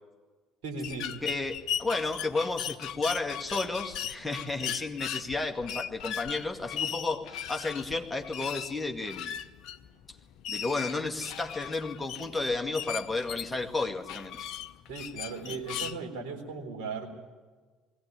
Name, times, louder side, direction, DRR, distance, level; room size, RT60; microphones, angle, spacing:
voice 1, 0.6-1.1 14.9-17.1, right 4 dB, 60° right, 2 dB, 3.8 m, -37 dB
sound 1, 0.8-16.0, left 9 dB, 55° left, 0.8 m, -38 dB
voice 2, 1.2-9.4 10.5-14.4, left 3 dB, 10° left, 2 dB, 2.1 m, -32 dB
21.0 x 16.5 x 9.8 m, 1.4 s
figure-of-eight pair, 60°, 0 cm